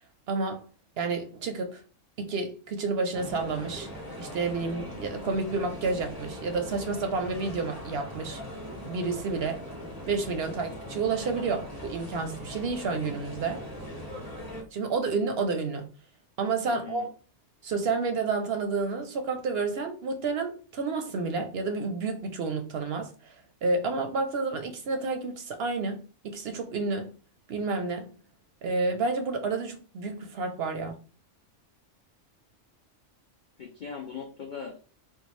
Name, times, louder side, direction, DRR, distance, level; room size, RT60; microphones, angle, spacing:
voice 1, 0.3-0.6 1.0-1.8 2.2-3.9 4.2-8.4 8.9-9.6 10.1-13.6 14.7-15.9 16.4-17.0 17.6-23.4 23.6-27.1 27.5-28.1 28.6-31.0, right 4 dB, 65° right, 0.7 m, -30 dB
sound 1, 3.1-14.6, left 1 dB, 20° left, 0.9 m, -40 dB
voice 2, 16.7-17.1 33.6-34.8, left 6 dB, 70° left, 0.4 m, -39 dB
3.6 x 2.3 x 3.0 m
omnidirectional pair, 1.3 m